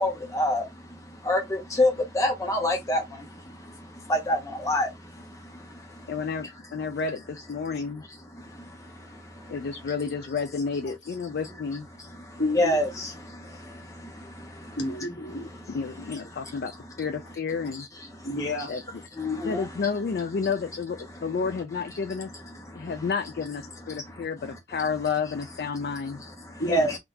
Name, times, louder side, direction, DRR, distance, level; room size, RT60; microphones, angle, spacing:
voice 1, 0.0-0.6 1.3-1.4 1.8-1.9 2.2-3.0 4.1-4.4 4.7-4.9 12.6-12.9 19.2-19.6 26.7-26.9, left 1 dB, 20° left, 0.7 m, -23 dB
voice 2, 6.1-8.0 9.5-11.9 15.7-16.7 17.0-17.9 18.7-18.8 19.4-22.3 22.7-26.2, left 5 dB, 60° left, 0.3 m, -31 dB
voice 3, 12.4-12.8 14.8-15.5 18.2-18.7 26.6-26.9, left 1 dB, 80° left, 1.2 m, -30 dB
3.6 x 2.3 x 2.7 m
head